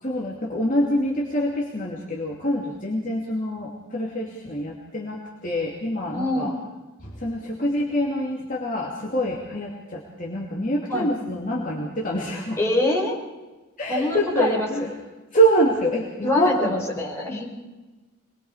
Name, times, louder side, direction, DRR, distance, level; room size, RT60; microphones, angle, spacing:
voice 1, 0.0-6.6 7.0-12.6 13.8-14.9 15.3-17.1, right 1 dB, 35° left, -3 dB, 2.8 m, -25 dB
voice 2, 6.1-6.5 10.9-11.1 12.6-13.2 13.9-14.9 16.2-17.5, left 1 dB, 10° left, -4 dB, 6.0 m, -25 dB
25.5 x 21.5 x 5.0 m, 1.2 s
head